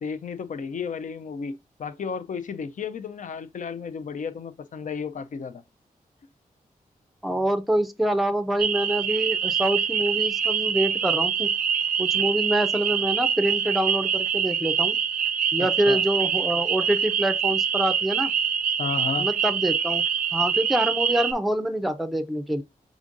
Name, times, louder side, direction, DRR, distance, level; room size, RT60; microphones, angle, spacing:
voice 1, 0.0-5.6 15.6-16.0 18.8-19.3, left 6 dB, 55° left, 0.5 m, -33 dB
voice 2, 7.2-11.5 12.0-15.0 15.5-18.3 19.2-20.0 20.3-22.6, right 1 dB, ahead, 0.5 m, -25 dB
sound 1, 8.6-21.3, right 7 dB, 65° right, 0.4 m, -25 dB
5.0 x 3.6 x 2.5 m
cardioid pair, 60°, 15 cm